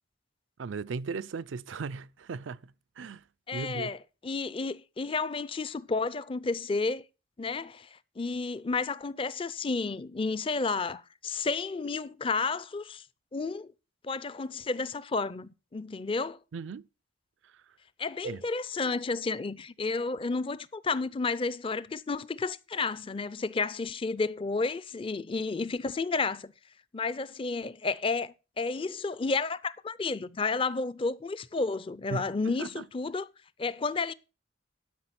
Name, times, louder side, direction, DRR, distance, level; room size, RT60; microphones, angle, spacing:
voice 1, 0.6-3.2 3.5-3.9 16.5-16.9 17.4-17.6 18.2-18.4 32.1-32.9, right 4 dB, 80° right, 0.5 m, -37 dB
voice 2, 3.5-4.0 4.2-7.0 7.4-7.9 8.2-13.0 13.3-13.7 14.0-16.4 18.0-26.5 26.9-33.3 33.6-34.1, left 4 dB, 30° left, 0.4 m, -31 dB
12.0 x 5.7 x 5.9 m
head